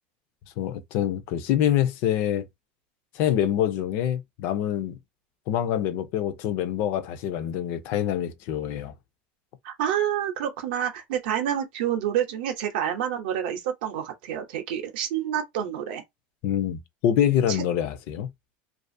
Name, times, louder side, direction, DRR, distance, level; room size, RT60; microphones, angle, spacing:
voice 1, 0.6-2.5 3.1-5.0 5.5-8.9 16.4-18.3, left 10 dB, 45° left, 0.4 m, -25 dB
voice 2, 9.6-16.0 17.5-17.6, right 10 dB, 75° right, 0.6 m, -28 dB
2.4 x 2.3 x 2.5 m
supercardioid pair, 175°, 5 cm